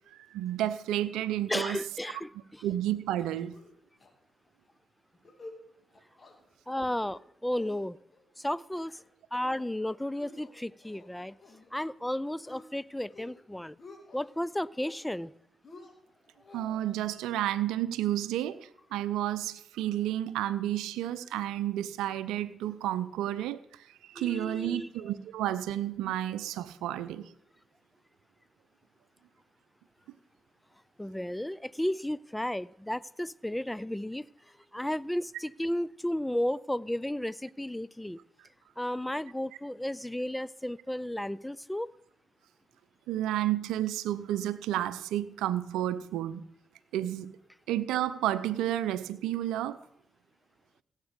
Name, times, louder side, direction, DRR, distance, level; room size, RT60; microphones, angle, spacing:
voice 1, 0.3-1.8 2.6-3.6 16.5-18.6 18.9-23.6 24.1-27.3 43.1-46.4 46.9-47.3 47.7-49.8, right 12 dB, 80° right, 16 dB, 0.6 m, -31 dB
voice 2, 1.5-2.6 6.7-8.0 8.4-9.0 9.3-11.4 11.7-13.8 14.1-15.3 24.2-24.9 31.0-34.3 34.7-38.2 38.8-41.9, left 1 dB, 10° left, 21 dB, 0.4 m, -33 dB
sound 1, 3.2-3.7 4.0-4.1 4.5-4.7 5.1-5.6 5.9-6.3 6.8-7.2 7.5-8.2 8.6-9.0 9.4-9.8 10.2-11.7 12.0-12.7 13.0-13.4 13.7-14.3 14.7-15.3 15.6-16.9, left 3 dB, 45° left, 2.7 m, -52 dB
16.5 x 8.1 x 5.1 m, 0.71 s
hypercardioid pair, 45°, 0 cm